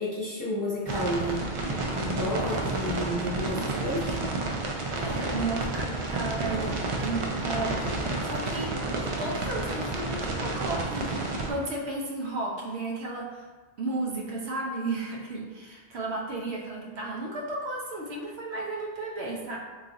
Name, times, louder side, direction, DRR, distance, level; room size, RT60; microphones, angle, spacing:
voice 1, 0.0-4.2, equal, 20° left, -8 dB, 0.8 m, -31 dB
sound 1, 0.9-11.5, right 2 dB, 55° right, 0.3 m, -30 dB
voice 2, 4.9-13.5 13.8-19.6, right 2 dB, 75° right, -2 dB, 1.0 m, -34 dB
3.3 x 2.4 x 3.8 m, 1.3 s
omnidirectional pair, 1.1 m